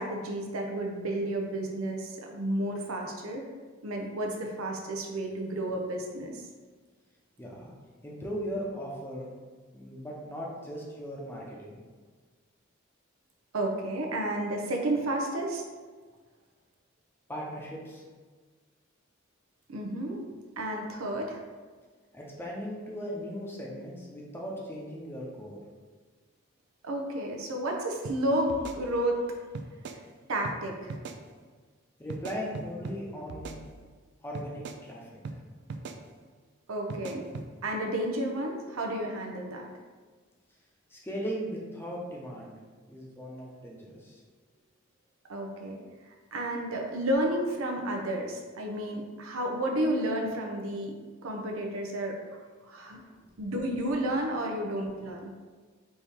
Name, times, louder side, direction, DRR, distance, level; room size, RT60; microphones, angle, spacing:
voice 1, 0.0-3.5 3.8-6.4 13.5-15.6 19.7-20.2 20.6-21.4 26.8-29.2 30.3-31.0 36.7-37.3 37.6-39.7 45.3-45.8 46.3-50.9 51.2-53.0 53.4-55.3, right 1 dB, 90° right, 1 dB, 0.6 m, -31 dB
voice 2, 7.4-7.7 8.0-9.3 9.7-11.8 17.3-18.0 22.1-25.6 32.0-33.6 34.2-35.1 40.9-42.5 42.9-44.2 52.9-53.1, equal, 10° left, -3 dB, 0.7 m, -38 dB
sound 1, 28.0-28.2 28.5-29.2 29.5-30.0 30.4-30.6 30.9-31.2 32.1-33.0 33.3-34.0 34.3-34.8 35.2-35.4 35.7-36.0 36.9-37.5, right 4 dB, 55° right, 0.3 m, -40 dB
4.3 x 2.9 x 3.5 m, 1.4 s
head